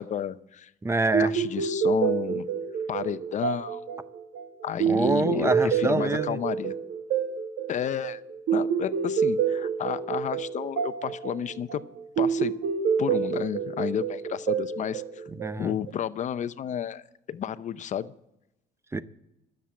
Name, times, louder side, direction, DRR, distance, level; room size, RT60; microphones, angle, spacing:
voice 1, 0.0-0.7 1.2-2.5 2.9-3.8 4.6-6.7 7.7-8.2 8.5-11.8 12.2-12.5 13.0-15.2 15.6-17.0 17.3-18.1, left 9 dB, 45° left, 0.6 m, -31 dB
voice 2, 0.8-1.3 4.9-6.4 15.4-15.7 18.9-19.0, right 2 dB, 15° right, 0.6 m, -26 dB
sound 1, 1.1-15.9, right 6 dB, 70° right, 1.7 m, -28 dB
12.5 x 7.5 x 8.3 m
cardioid pair, 110°, 17 cm